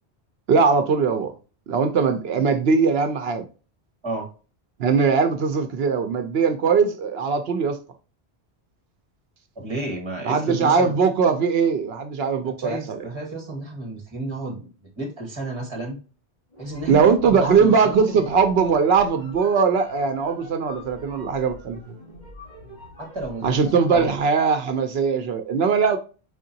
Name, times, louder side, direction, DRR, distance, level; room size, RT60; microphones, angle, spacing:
voice 1, 0.5-1.3 1.7-3.5 4.8-7.8 10.2-13.0 16.9-21.8 23.4-26.0, right 5 dB, 70° right, 0.8 m, -20 dB
voice 2, 9.5-10.9 12.6-14.7 15.0-16.0 16.6-18.2 23.0-23.5 23.9-24.1, right 2 dB, 25° right, 1.5 m, -31 dB
sound 1, 16.5-24.3, left 1 dB, 45° left, 2.3 m, -44 dB
5.0 x 3.7 x 2.7 m
omnidirectional pair, 1.1 m